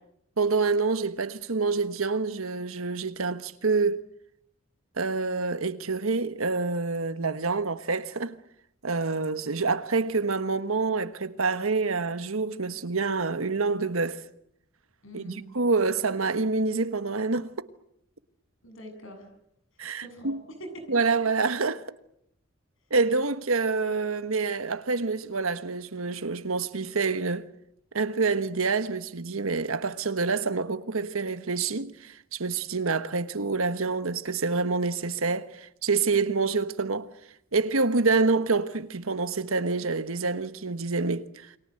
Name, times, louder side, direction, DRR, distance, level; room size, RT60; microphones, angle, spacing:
voice 1, 0.4-4.0 5.0-8.4 8.8-14.2 15.1-17.7 19.8-20.4 20.9-21.8 22.9-27.5 27.9-37.1 37.5-41.5, right 4 dB, 90° right, 1.4 m, -27 dB
voice 2, 15.0-15.4 18.6-19.3 20.0-21.2, equal, 70° left, 7.8 m, -44 dB
29.0 x 24.0 x 7.8 m
head